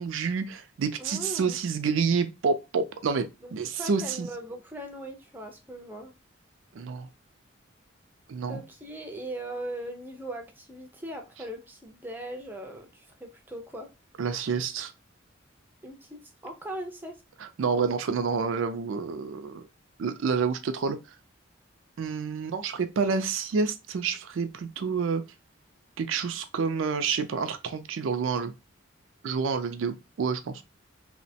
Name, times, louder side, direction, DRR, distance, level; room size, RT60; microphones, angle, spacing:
voice 1, 0.0-4.3 6.7-7.1 8.3-8.6 14.2-14.9 17.6-19.6 20.0-21.0 22.0-25.2 26.0-28.5 29.2-30.6, right 5 dB, 75° right, 0.4 m, -28 dB
voice 2, 1.0-1.6 3.4-6.1 8.5-13.9 15.8-17.2, right 1 dB, 10° right, 0.4 m, -39 dB
2.8 x 2.1 x 2.7 m
head